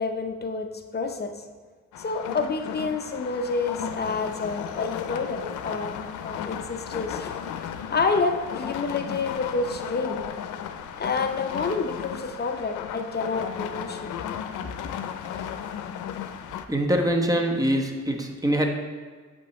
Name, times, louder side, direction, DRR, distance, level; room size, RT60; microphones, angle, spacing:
voice 1, 0.0-1.4 2.0-6.0 6.2-7.3 7.9-10.2 11.0-14.1, left 4 dB, 35° left, 5 dB, 0.7 m, -28 dB
sound 1, 1.9-16.7, left 8 dB, 85° left, 0.6 m, -35 dB
voice 2, 16.7-18.7, right 1 dB, 10° right, 3 dB, 1.1 m, -23 dB
8.5 x 7.9 x 3.2 m, 1.5 s
cardioid pair, 90°, 30 cm